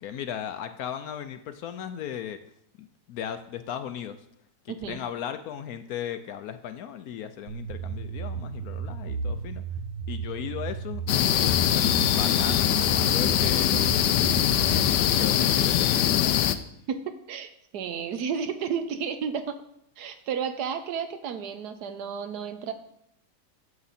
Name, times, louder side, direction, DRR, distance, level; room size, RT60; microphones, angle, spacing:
voice 1, 0.0-2.4 2.8-4.3 4.6-9.6 10.1-11.0 11.3-13.8 14.5-16.0 16.3-16.4, left 9 dB, 70° left, 9 dB, 0.9 m, -37 dB
voice 2, 4.7-5.0 16.9-19.6 20.0-22.7, right 7 dB, 70° right, 9 dB, 1.3 m, -32 dB
sound 1, 7.5-14.9, right 6 dB, 90° right, 1.6 m, -34 dB
sound 2, 11.1-16.6, left 10 dB, 85° left, 1.2 m, -22 dB
9.5 x 7.0 x 4.2 m, 0.74 s
omnidirectional pair, 1.8 m